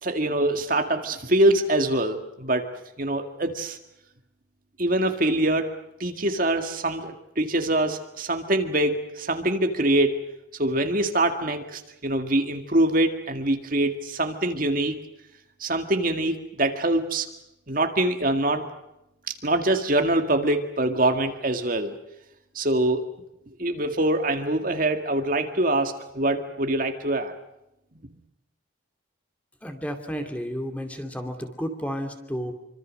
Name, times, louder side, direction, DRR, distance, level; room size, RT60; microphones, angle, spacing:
voice 1, 0.0-2.7 3.0-3.8 4.8-5.7 6.0-10.2 10.6-15.0 15.6-17.3 17.7-18.7 19.4-21.9 22.6-23.0 23.6-27.3, right 1 dB, 45° right, 5 dB, 1.9 m, -24 dB
voice 2, 29.6-32.5, equal, 5° left, 5 dB, 2.6 m, -32 dB
26.5 x 25.5 x 6.5 m, 0.86 s
head